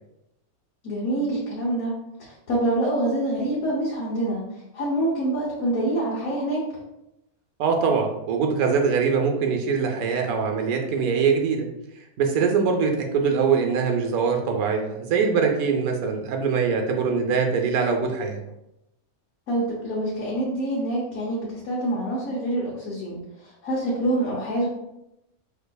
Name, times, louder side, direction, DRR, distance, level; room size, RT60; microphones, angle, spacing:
voice 1, 0.8-4.4 4.7-6.7 19.5-24.7, right 1 dB, 75° left, -7 dB, 1.3 m, -26 dB
voice 2, 7.6-11.7 12.2-18.4, right 5 dB, 80° right, 2 dB, 1.0 m, -23 dB
4.7 x 2.7 x 2.2 m, 0.87 s
omnidirectional pair, 1.5 m